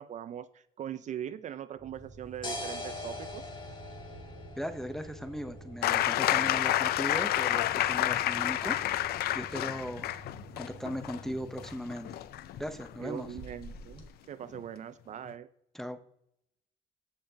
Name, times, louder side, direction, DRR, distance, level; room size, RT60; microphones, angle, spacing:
voice 1, 0.0-3.5 13.0-15.5, right 10 dB, 45° right, 14 dB, 0.4 m, -41 dB
Interior Spaceship Ambience, 1.8-11.7, right 3 dB, 80° right, 2.7 m, -51 dB
sound 1, 1.9-14.1, left 2 dB, 30° left, 2.1 m, -46 dB
voice 2, 4.6-8.8 9.3-10.1 10.6-12.2 12.6-13.3 15.7-16.0, equal, ahead, 9 dB, 0.7 m, -38 dB
sound 2, 5.8-13.4 14.5-14.6, left 13 dB, 65° left, 0.5 m, -29 dB
15.5 x 5.7 x 2.8 m, 0.73 s
cardioid pair, 110°, 17 cm